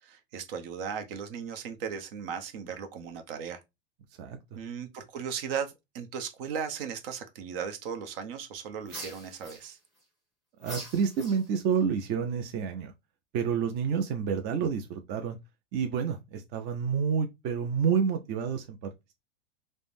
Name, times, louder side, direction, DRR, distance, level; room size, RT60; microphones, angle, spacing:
voice 1, 0.0-3.6 4.6-9.8, right 7 dB, 60° right, 0.8 m, -37 dB
sound 1, 8.9-10.0 10.6-11.8, right 1 dB, ahead, 1.6 m, -44 dB
voice 2, 10.6-12.9 13.3-15.4 15.7-18.9, right 6 dB, 35° right, 0.4 m, -29 dB
3.3 x 2.1 x 2.5 m
supercardioid pair, 130°, 32 cm